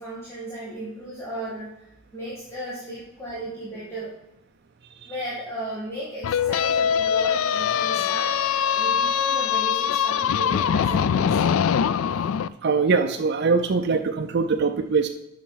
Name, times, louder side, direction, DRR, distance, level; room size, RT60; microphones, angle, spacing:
voice 1, 0.0-1.7 2.1-4.1 5.0-8.3 8.8-11.5, right 1 dB, 15° left, -9 dB, 1.8 m, -35 dB
sound 1, 6.2-12.5, left 8 dB, 85° left, 0.3 m, -22 dB
voice 2, 12.6-15.1, right 4 dB, 55° right, 5 dB, 0.5 m, -22 dB
7.4 x 5.7 x 5.6 m, 0.88 s
head